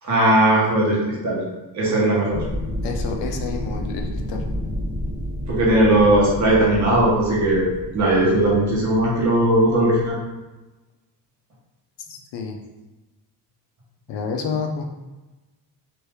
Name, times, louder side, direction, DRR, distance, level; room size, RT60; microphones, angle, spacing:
voice 1, 0.0-1.4 1.7-2.4 5.5-7.6 7.9-10.2, right 1 dB, 40° right, -5 dB, 1.1 m, -18 dB
sound 1, 2.3-10.1, equal, 15° right, 1.1 m, -30 dB
voice 2, 2.8-4.5 12.1-12.6 14.1-14.9, left 5 dB, 80° left, 3 dB, 0.6 m, -29 dB
3.0 x 2.7 x 3.3 m, 1.1 s
cardioid pair, 175°, 43 cm